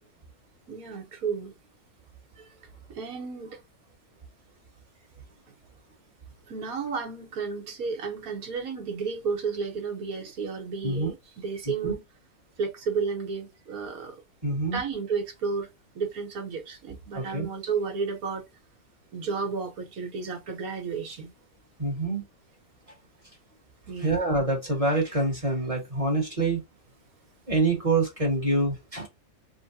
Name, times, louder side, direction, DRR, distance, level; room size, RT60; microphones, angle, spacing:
voice 1, 0.7-1.5 2.4-2.5 2.9-3.6 6.5-12.0 12.6-14.2 14.5-15.7 15.9-18.4 19.1-21.3 23.9-24.2, right 5 dB, 65° right, 1.6 m, -32 dB
voice 2, 14.4-14.8 17.1-17.5 21.8-22.2 24.0-26.6 27.5-29.1, right 2 dB, 25° right, 1.4 m, -26 dB
3.6 x 2.2 x 2.7 m
omnidirectional pair, 1.7 m